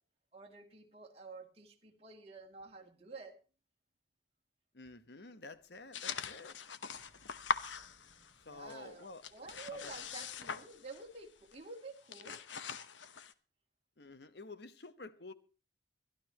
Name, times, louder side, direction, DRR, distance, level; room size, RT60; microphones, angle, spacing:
voice 1, 0.3-3.4 8.4-12.4, right 3 dB, 30° right, 0 dB, 2.4 m, -50 dB
voice 2, 4.7-6.6 8.5-9.2 9.8-9.9 14.0-15.3, left 2 dB, 65° left, 13 dB, 1.1 m, -50 dB
Engine, 5.5-11.6, right 1 dB, 15° left, 5.9 m, -70 dB
sound 1, 5.9-8.4 8.7-11.2 11.5-11.7 12.0-13.3, left 6 dB, 85° left, 1.0 m, -42 dB
24.5 x 12.0 x 2.9 m, 0.34 s
head